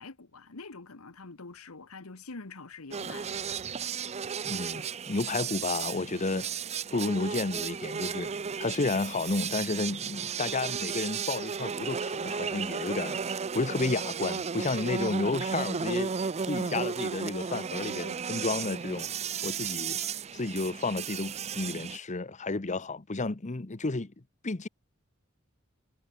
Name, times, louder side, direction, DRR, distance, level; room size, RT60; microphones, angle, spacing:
voice 1, 0.0-3.5, left 3 dB, 90° left, 1.4 m, -45 dB
sound 1, 2.9-22.0, right 6 dB, 30° right, 0.5 m, -34 dB
voice 2, 4.4-6.5 6.9-8.3 8.6-16.1 16.4-19.1 19.4-20.0 20.3-24.1 24.4-24.7, left 3 dB, 35° left, 0.9 m, -31 dB
head